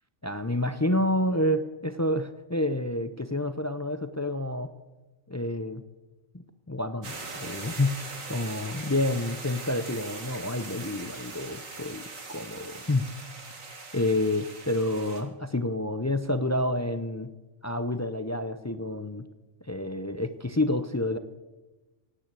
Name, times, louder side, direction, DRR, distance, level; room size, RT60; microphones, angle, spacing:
voice 1, 0.2-4.7 5.3-5.8 6.7-8.0 8.3-13.1 13.9-17.3 17.6-19.2 19.6-21.2, left 1 dB, 25° left, 10 dB, 0.3 m, -29 dB
sound 1, 7.0-15.2, right 3 dB, 85° right, 2.3 m, -41 dB
17.0 x 9.1 x 8.2 m, 1.2 s
omnidirectional pair, 1.3 m